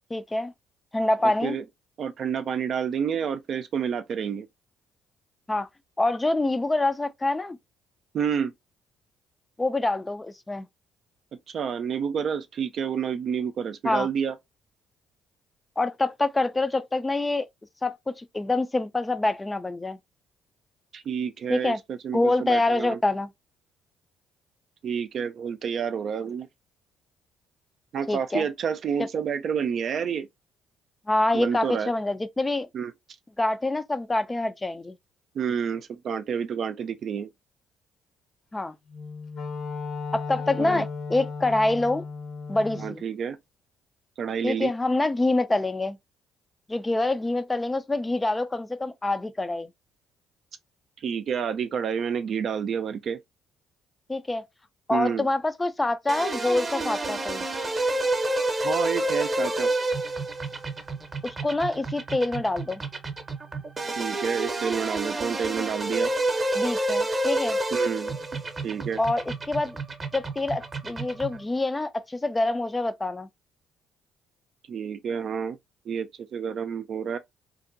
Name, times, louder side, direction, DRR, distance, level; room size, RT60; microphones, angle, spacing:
voice 1, 0.1-0.5 0.9-1.6 5.5-5.7 6.0-7.6 9.6-10.7 13.8-14.1 15.8-17.5 17.8-20.0 21.5-21.8 22.1-23.3 28.1-28.5 29.0-29.1 31.1-32.7 33.4-35.0 38.5-38.8 40.1-42.0 42.5-43.0 44.4-46.0 46.7-49.7 54.1-54.4 54.9-57.4 61.2-62.8 66.5-67.6 69.0-69.8 70.1-73.3, left 2 dB, 20° left, 0.4 m, -26 dB
voice 2, 1.2-1.6 2.0-4.5 8.1-8.5 11.5-14.4 20.9-23.0 24.8-26.5 27.9-30.3 31.3-31.9 32.7-32.9 35.3-37.3 40.6-40.9 42.8-43.4 44.2-44.7 51.0-53.2 54.9-55.3 58.6-59.7 64.0-66.1 67.7-68.1 68.6-69.0 74.7-75.6 75.9-77.2, right 7 dB, 55° right, 0.4 m, -29 dB
Wind instrument woodwind instrument, 38.9-43.0, left 4 dB, 65° left, 1.0 m, -35 dB
sound 1, 56.1-71.4, right 2 dB, 35° right, 0.8 m, -29 dB
2.6 x 2.1 x 2.5 m
hypercardioid pair, 55°, 0 cm